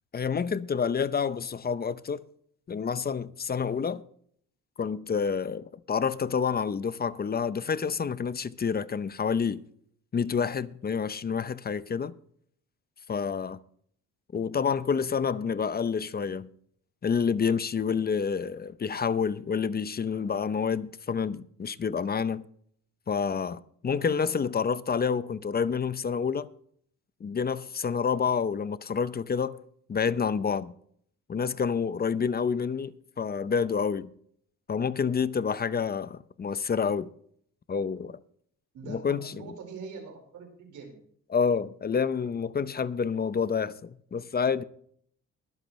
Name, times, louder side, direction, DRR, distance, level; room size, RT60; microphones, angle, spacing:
voice 1, 0.1-2.2 2.7-4.0 4.8-9.6 10.1-12.1 13.1-13.6 14.3-16.5 17.0-22.4 23.1-26.5 27.2-29.6 29.9-30.7 31.3-34.1 34.7-37.1 37.7-38.2 38.9-39.3 41.3-44.6, left 6 dB, 30° left, 0.7 m, -28 dB
voice 2, 38.7-41.0, right 4 dB, 75° right, 4.7 m, -43 dB
22.5 x 7.9 x 3.2 m
cardioid pair, 90°, 30 cm